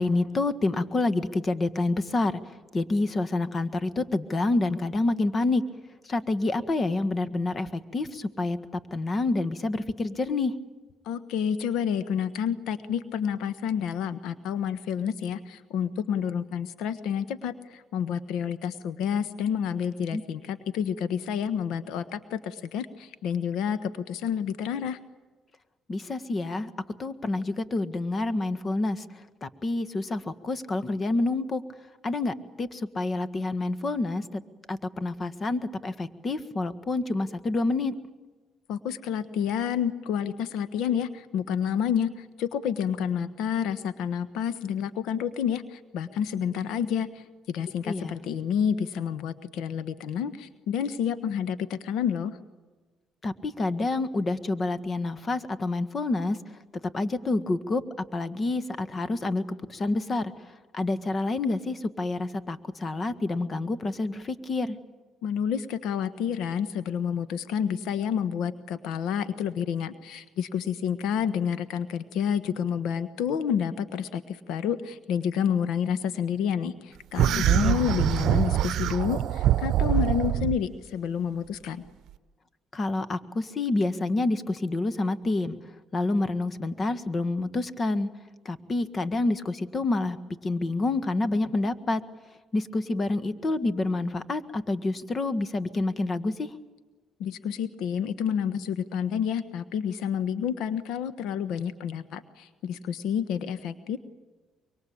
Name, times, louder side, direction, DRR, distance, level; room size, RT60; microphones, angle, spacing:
voice 1, 0.0-2.4 2.7-5.6 6.1-8.6 8.9-10.5 20.1-20.2 25.9-26.7 27.0-29.0 29.4-31.6 32.0-34.4 34.7-37.9 47.8-48.1 53.2-56.4 56.9-57.8 58.1-59.4 59.7-60.3 60.7-64.8 77.5-77.8 82.7-85.6 85.9-88.1 88.4-90.2 90.4-92.0 92.5-96.5, left 2 dB, 40° left, 13 dB, 1.7 m, -28 dB
voice 2, 11.0-25.0 38.7-52.4 65.2-81.8 97.2-104.0, left 8 dB, 75° left, 13 dB, 1.2 m, -29 dB
sound 1, 77.2-80.6, right 12 dB, 70° right, 0.7 m, -24 dB
24.5 x 24.0 x 8.7 m, 1.3 s
supercardioid pair, 70°, 0 cm